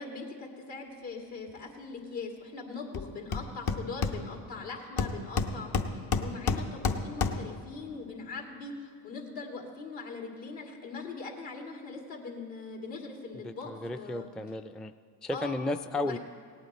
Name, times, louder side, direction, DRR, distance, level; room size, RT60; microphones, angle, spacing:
voice 1, 0.0-14.3 15.3-15.6 16.0-16.2, left 4 dB, 75° left, 1 dB, 2.4 m, -41 dB
Hammer, 2.9-3.0 3.3-4.6 5.0-7.6, left 4 dB, 55° left, 1.0 m, -30 dB
voice 2, 13.4-14.9 15.2-16.2, left 2 dB, ahead, 8 dB, 0.3 m, -34 dB
18.0 x 8.9 x 4.2 m, 2.2 s
supercardioid pair, 65°, 43 cm